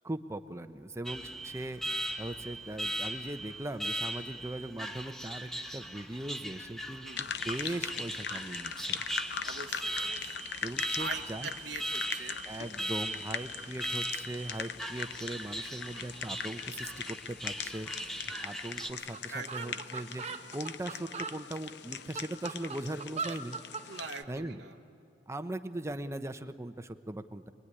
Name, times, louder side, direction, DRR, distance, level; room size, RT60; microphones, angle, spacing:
voice 1, 0.0-9.0 10.6-11.5 12.5-23.6 24.3-24.6 25.3-27.5, right 1 dB, 15° right, 9 dB, 0.7 m, -40 dB
Alarm, 1.1-18.9, right 1 dB, ahead, 1.1 m, -39 dB
voice 2, 6.9-7.3 9.4-10.5 11.0-12.4 19.3-19.9 23.9-24.8, right 4 dB, 75° right, 0 dB, 1.0 m, -43 dB
drip coffee, 7.2-24.2, left 7 dB, 65° left, 0.7 m, -41 dB
sound 1, 18.8-18.9 19.1-19.2 19.5-21.4 21.9-23.9, right 5 dB, 35° right, 1.1 m, -39 dB
25.5 x 21.0 x 9.8 m, 2.5 s
head